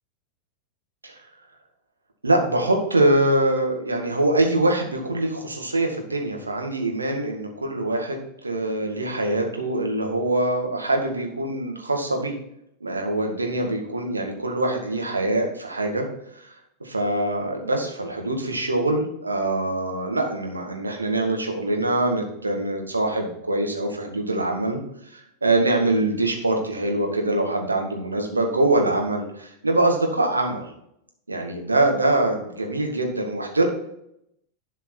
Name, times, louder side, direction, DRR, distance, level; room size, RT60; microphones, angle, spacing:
voice 1, 2.2-12.3 12.8-16.1 16.8-24.8 25.1-30.6 31.3-33.7, right 2 dB, 80° right, 2 dB, 1.7 m, -24 dB
11.5 x 5.2 x 4.4 m, 0.77 s
figure-of-eight pair, 90°, 0 cm